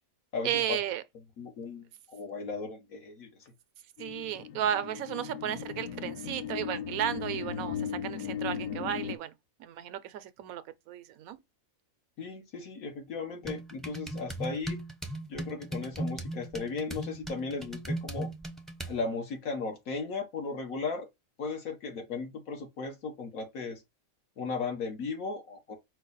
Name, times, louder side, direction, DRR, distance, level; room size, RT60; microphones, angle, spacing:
voice 1, 0.4-1.0 4.0-9.3 9.6-11.4, right 10 dB, 85° right, 1.0 m, -34 dB
voice 2, 1.4-3.5 12.2-14.8 15.3-18.3 18.9-21.1 21.4-23.8 24.4-25.8, left 4 dB, 85° left, 1.6 m, -36 dB
sound 1, 4.0-9.2, left 8 dB, 65° left, 0.8 m, -37 dB
sound 2, 13.4-19.0, right 1 dB, ahead, 0.4 m, -38 dB
5.3 x 2.2 x 3.9 m
omnidirectional pair, 1.4 m